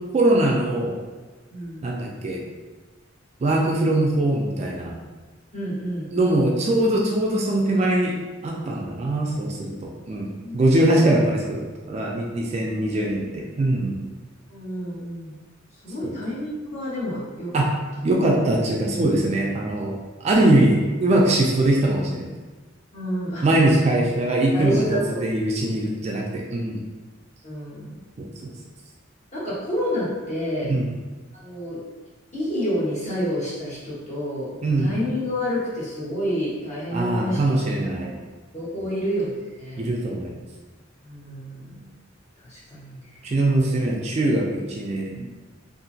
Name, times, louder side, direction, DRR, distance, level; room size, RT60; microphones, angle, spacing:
voice 1, 0.1-1.0 1.8-2.4 3.4-4.9 6.1-8.1 8.4-10.3 10.5-14.0 16.0-16.1 17.5-17.7 18.0-20.0 20.2-22.3 23.4-26.8 28.4-28.5 30.6-30.9 34.6-34.9 36.9-38.2 38.8-38.9 39.8-40.3 43.2-45.3, right 1 dB, 35° right, -1 dB, 0.3 m, -22 dB
voice 2, 1.5-1.9 5.5-6.1 10.4-10.5 14.5-15.4 15.8-17.7 22.9-23.4 24.5-25.2 27.4-28.0 29.3-30.7 31.3-31.8 32.3-34.5 34.8-37.4 38.5-39.9 41.0-41.7 42.4-43.2, equal, 35° left, -9 dB, 1.1 m, -29 dB
2.8 x 2.5 x 2.6 m, 1.3 s
head